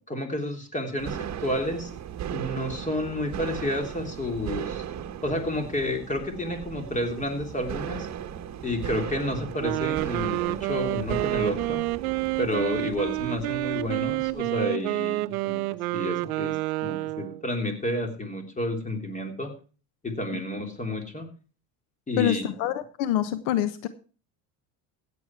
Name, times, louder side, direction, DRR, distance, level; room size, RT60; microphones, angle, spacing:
voice 1, 0.0-1.9 2.3-4.8 5.2-8.1 8.6-11.8 12.4-15.6 15.9-19.5 20.0-21.3 22.1-22.4, left 1 dB, 15° left, 5 dB, 3.3 m, -30 dB
sound 1, 1.0-14.4, right 9 dB, 40° right, 1.3 m, -37 dB
Wind instrument woodwind instrument, 9.5-17.4, right 20 dB, 90° right, 0.6 m, -29 dB
voice 2, 22.2-23.9, left 12 dB, 75° left, 12 dB, 1.2 m, -26 dB
15.5 x 8.6 x 4.6 m, 0.37 s
supercardioid pair, 100°, 42 cm